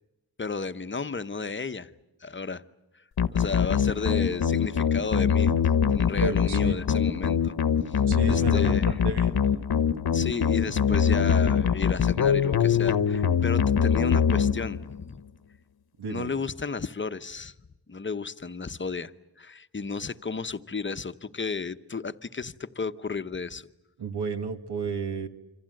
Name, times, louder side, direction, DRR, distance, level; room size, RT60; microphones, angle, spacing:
voice 1, 0.4-1.9 2.2-2.6 2.9-3.0 3.3-5.5 5.9-7.5 7.9-8.0 8.3-9.0 10.1-15.2 16.1-17.5 17.9-19.1 19.4-23.7, left 4 dB, 30° left, 11 dB, 0.9 m, -33 dB
sound 1, 3.2-15.0, left 7 dB, 65° left, 1.1 m, -23 dB
voice 2, 6.2-6.8 8.1-9.4 16.0-16.3 24.0-25.3, right 4 dB, 75° right, 8 dB, 2.1 m, -32 dB
27.5 x 26.0 x 7.7 m, 0.98 s
wide cardioid pair, 135°, 40 cm